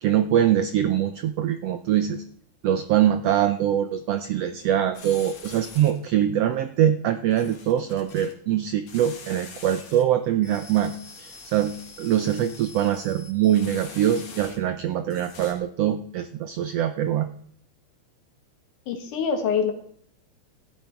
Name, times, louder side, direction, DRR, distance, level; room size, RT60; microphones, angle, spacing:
voice 1, 0.0-2.2 2.6-10.9 11.2-17.3, right 10 dB, 80° right, 9 dB, 1.4 m, -23 dB
sound 1, 4.9-6.1 7.3-8.3 8.9-10.0 10.4-14.8 15.1-15.5, left 4 dB, 60° left, 3.4 m, -44 dB
voice 2, 18.9-19.7, left 6 dB, 75° left, 5 dB, 3.2 m, -24 dB
15.0 x 12.0 x 4.5 m, 0.62 s
omnidirectional pair, 3.6 m